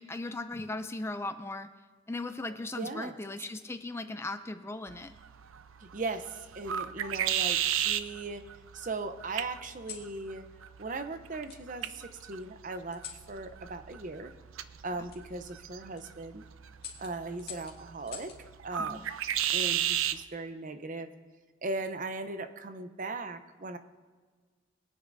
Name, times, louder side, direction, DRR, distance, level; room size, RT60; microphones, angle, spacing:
voice 1, 0.0-1.7 2.1-5.1 18.9-19.1, left 2 dB, 15° left, 10 dB, 0.4 m, -37 dB
sound 1, 2.3-3.4 4.4-4.8 6.1-6.9 7.5-8.4 9.6-10.1 11.5-11.6 12.9-13.3 15.1-15.2 15.8-16.0 16.8-18.4 19.9-20.3, left 8 dB, 50° left, 2.0 m, -49 dB
voice 2, 2.8-3.2 5.9-6.2 6.6-8.4 8.7-10.4 10.8-13.0 13.3-14.3 14.8-16.4 17.0-18.3 18.6-19.1 19.5-21.1 21.6-23.8, right 3 dB, 40° right, 9 dB, 0.7 m, -38 dB
sound 2, 4.9-20.2, right 10 dB, 90° right, 0.5 m, -36 dB
22.5 x 9.6 x 2.6 m, 1.5 s
head